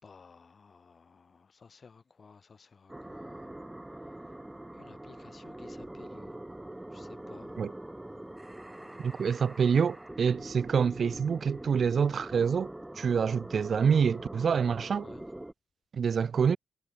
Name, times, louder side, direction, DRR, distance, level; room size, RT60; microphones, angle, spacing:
voice 1, 0.0-3.5 3.9-4.4 4.7-6.4 6.9-7.6 9.0-9.2 14.9-15.3, left 5 dB, 45° left, 5.2 m, -55 dB
sound 1, 2.9-15.5, right 1 dB, 10° right, 5.4 m, -44 dB
voice 2, 9.0-12.7 13.0-15.0 15.9-16.6, right 6 dB, 50° right, 0.3 m, -26 dB
hypercardioid pair, 40°, 0 cm